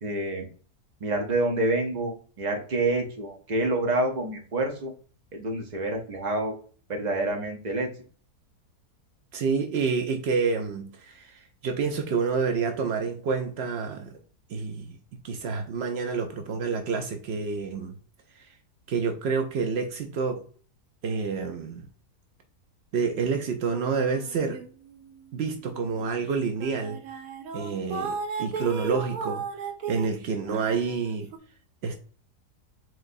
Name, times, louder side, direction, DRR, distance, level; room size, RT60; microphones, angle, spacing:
voice 1, 0.0-0.5 1.0-4.9 5.3-6.5 6.9-7.9, right 2 dB, 40° right, 0.7 m, -27 dB
voice 2, 9.3-14.2 14.5-15.0 15.2-18.0 18.3-18.5 18.9-20.4 21.0-21.9 22.9-24.6 25.3-27.2 27.5-29.4 29.9-31.3 31.8-32.0, right 5 dB, 90° right, 0.5 m, -28 dB
sound 1, 23.7-25.1 25.5-25.7 26.3-26.4 26.6-31.4, right 5 dB, 65° right, 1.0 m, -35 dB
4.7 x 3.7 x 2.6 m
omnidirectional pair, 1.8 m